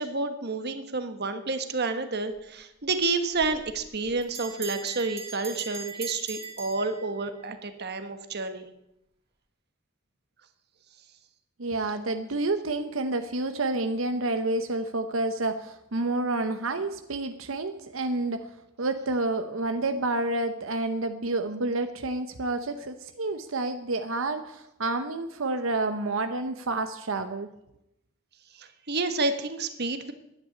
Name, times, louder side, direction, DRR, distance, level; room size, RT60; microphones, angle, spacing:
voice 1, 0.0-8.7 28.5-30.1, right 3 dB, 55° right, 9 dB, 1.4 m, -30 dB
Bell, 3.4-7.5, right 4 dB, 30° right, 3.3 m, -40 dB
voice 2, 11.6-18.5 18.8-27.5, right 2 dB, 85° right, 8 dB, 0.9 m, -29 dB
11.0 x 9.7 x 8.7 m, 0.83 s
head